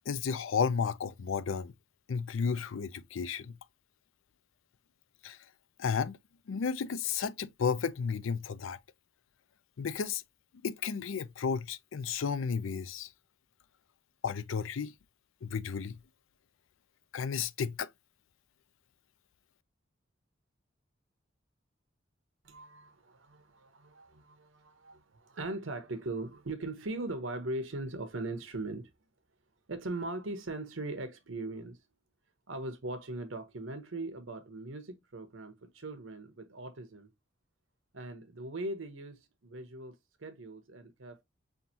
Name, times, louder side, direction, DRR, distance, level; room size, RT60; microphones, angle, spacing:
voice 1, 0.1-1.7 2.1-3.6 5.2-5.4 5.8-6.2 6.5-8.8 9.8-10.2 10.6-13.1 14.2-14.9 15.4-16.0 17.1-17.9, left 6 dB, 90° left, 0.5 m, -33 dB
voice 2, 22.4-28.9 29.7-31.8 32.5-37.1 37.9-39.9 40.2-41.2, right 2 dB, 90° right, 1.0 m, -40 dB
5.6 x 2.6 x 2.8 m
head